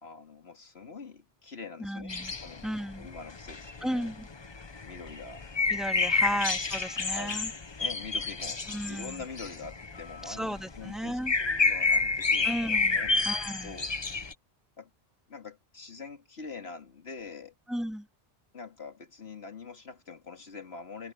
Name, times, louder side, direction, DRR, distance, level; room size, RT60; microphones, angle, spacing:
voice 1, 0.0-2.1 2.4-2.6 3.0-4.1 4.8-5.4 6.3-6.4 7.1-7.4 7.8-13.4 13.6-13.9 14.8-14.9 15.3-17.5 18.5-21.1, left 4 dB, 90° left, 2.4 m, -44 dB
voice 2, 1.8-2.3 2.6-3.1 3.8-4.3 5.7-7.5 8.7-9.2 10.3-11.3 12.4-13.0 13.3-13.8 17.7-18.1, equal, ahead, 2.0 m, -34 dB
sound 1, 2.1-14.3, left 3 dB, 30° left, 0.8 m, -30 dB
omnidirectional pair, 1.0 m